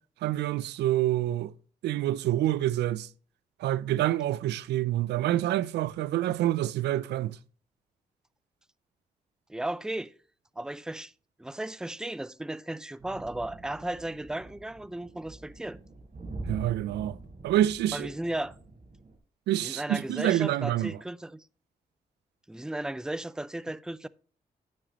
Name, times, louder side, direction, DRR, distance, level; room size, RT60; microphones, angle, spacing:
voice 1, 0.2-1.5 1.8-3.1 3.6-7.4 16.5-17.2 17.4-18.1 19.5-21.0, right 13 dB, 90° right, 0.4 m, -27 dB
voice 2, 9.5-10.1 10.6-11.1 11.4-15.8 17.9-18.6 19.6-21.4 22.5-24.1, right 1 dB, 5° right, 0.4 m, -35 dB
sound 1, 13.0-19.2, right 2 dB, 50° right, 3.3 m, -44 dB
9.2 x 7.5 x 2.9 m
supercardioid pair, 45°, 17 cm